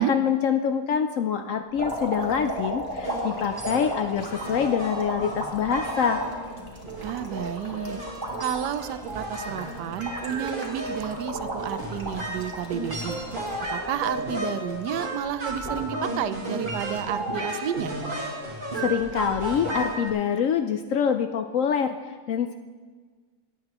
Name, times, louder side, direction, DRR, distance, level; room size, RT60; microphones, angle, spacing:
voice 1, 0.0-6.2 18.8-21.9 22.3-22.6, left 7 dB, 70° left, 7 dB, 0.8 m, -25 dB
sound 1, 1.7-14.1 14.6-15.3 16.3-16.5, right 1 dB, 15° right, 1.7 m, -35 dB
sound 2, 3.0-20.1, right 1 dB, 30° right, 1.8 m, -34 dB
voice 2, 7.0-8.0 8.4-13.2 13.7-17.9, right 10 dB, 85° right, 13 dB, 1.2 m, -31 dB
17.5 x 9.6 x 3.0 m, 1.4 s
omnidirectional pair, 1.8 m